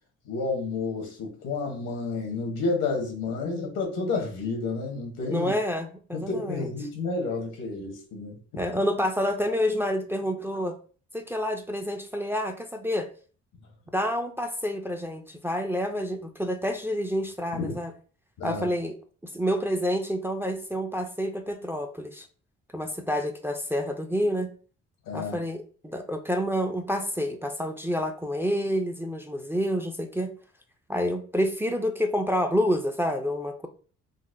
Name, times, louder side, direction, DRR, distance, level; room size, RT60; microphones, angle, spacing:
voice 1, 0.2-5.5 6.1-8.4 17.5-17.7 18.4-18.7 25.1-25.4, left 3 dB, 90° left, 2 dB, 1.1 m, -30 dB
voice 2, 5.3-6.7 8.6-10.7 11.1-13.1 13.9-17.9 18.4-18.9 19.3-22.3 22.7-24.5 25.1-30.3 30.9-33.7, equal, 10° right, 5 dB, 0.3 m, -28 dB
3.9 x 2.2 x 2.5 m, 0.40 s
cardioid pair, 90°, 30 cm